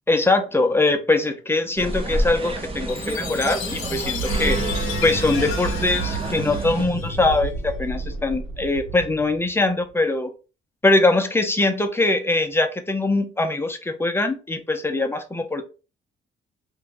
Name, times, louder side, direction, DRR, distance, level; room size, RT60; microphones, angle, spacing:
voice 1, 0.1-4.6 5.0-10.3 10.8-15.6, left 2 dB, 10° left, 0.6 m, -22 dB
sound 1, 1.8-6.9, right 2 dB, 30° right, 0.6 m, -28 dB
Chime, 2.9-7.4, left 11 dB, 85° left, 0.4 m, -34 dB
sound 2, 3.6-9.9, right 3 dB, 65° right, 1.1 m, -31 dB
2.7 x 2.2 x 3.7 m
cardioid pair, 90°, 20 cm